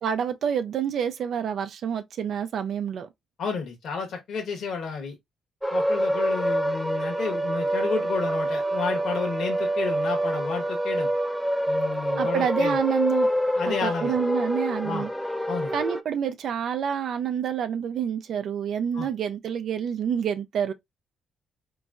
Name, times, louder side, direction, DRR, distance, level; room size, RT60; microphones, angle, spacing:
voice 1, 0.0-3.1 12.2-13.3 13.7-15.1 15.7-20.7, right 8 dB, 65° right, 0.4 m, -28 dB
voice 2, 3.4-5.1 5.7-11.1 11.7-12.8 13.6-14.2 14.8-15.1 15.5-15.7 18.9-19.1, left 5 dB, 65° left, 1.2 m, -31 dB
sound 1, 5.6-16.0, right 1 dB, ahead, 0.5 m, -26 dB
3.6 x 3.0 x 2.5 m
cardioid pair, 90°, 0 cm